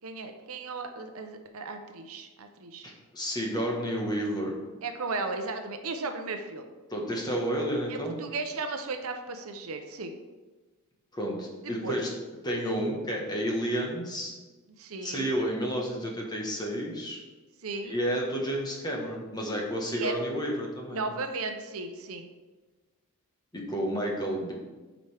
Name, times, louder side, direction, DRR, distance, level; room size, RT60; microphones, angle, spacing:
voice 1, 0.0-2.9 4.8-6.6 7.9-10.1 11.6-12.0 14.8-15.3 17.6-17.9 19.9-20.2 20.9-22.3, right 3 dB, 70° right, 6 dB, 0.7 m, -35 dB
voice 2, 2.8-4.5 6.9-8.2 11.1-12.1 12.4-14.3 15.0-17.2 17.8-21.0 23.5-24.5, equal, 20° left, -1 dB, 1.3 m, -31 dB
8.5 x 5.1 x 3.4 m, 1.3 s
head